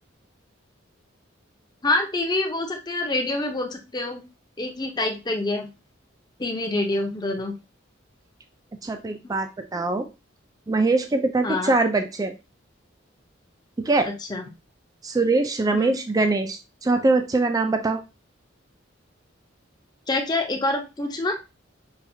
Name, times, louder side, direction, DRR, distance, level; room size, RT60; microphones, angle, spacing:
voice 1, 1.8-4.2 4.6-5.7 6.4-7.5 11.4-11.7 14.3-14.4 15.7-16.0 20.1-21.4, left 2 dB, 20° left, 3 dB, 0.7 m, -26 dB
voice 2, 8.8-10.1 10.7-12.3 13.8-14.1 15.0-18.0, right 3 dB, 20° right, 6 dB, 0.3 m, -23 dB
5.7 x 2.3 x 2.7 m, 0.27 s
head